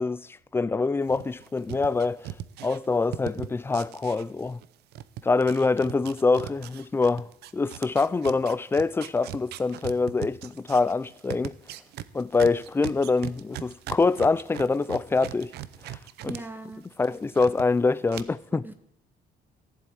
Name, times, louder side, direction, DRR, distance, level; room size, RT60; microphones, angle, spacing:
voice 1, 0.0-2.3 2.6-4.6 5.2-7.3 7.5-11.6 12.1-15.5 15.8-16.4 17.0-18.6, left 3 dB, 15° left, 0.4 m, -25 dB
sound 1, 1.1-4.7 4.9-16.4 16.7-17.6 18.1-18.2, right 12 dB, 75° right, 0.7 m, -39 dB
voice 2, 16.2-16.8 18.5-18.7, right 2 dB, 10° right, 0.9 m, -40 dB
14.0 x 7.6 x 8.7 m
cardioid pair, 110°, 17 cm